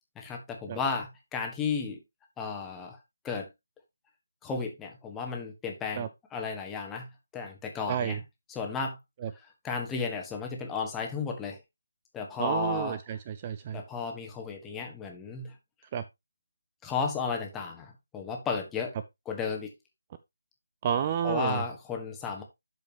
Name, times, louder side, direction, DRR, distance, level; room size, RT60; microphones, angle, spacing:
voice 1, 0.1-2.0 2.4-3.0 3.2-3.5 4.4-7.1 7.3-8.2 8.5-9.0 9.4-11.6 12.1-13.0 13.7-15.5 16.8-18.9 19.2-19.7 21.2-22.4, left 5 dB, 10° left, 1.5 m, -34 dB
voice 2, 7.9-8.2 9.2-9.3 12.4-13.8 15.9-16.0 20.8-21.6, right 8 dB, 25° right, 0.4 m, -30 dB
12.0 x 5.2 x 2.9 m
figure-of-eight pair, 150°, 0 cm